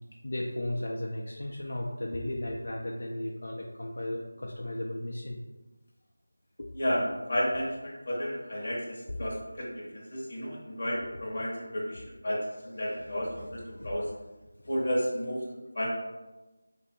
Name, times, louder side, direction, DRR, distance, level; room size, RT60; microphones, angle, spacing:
voice 1, 0.2-5.4 6.6-6.7 9.1-9.2 11.1-11.2 13.0-13.5 13.8-13.9, left 1 dB, 55° left, -2 dB, 0.4 m, -35 dB
voice 2, 6.7-14.1 14.7-15.5 15.7-15.9, equal, 30° left, -4 dB, 0.8 m, -32 dB
3.0 x 2.5 x 4.1 m, 1.1 s
figure-of-eight pair, 180°, 0 cm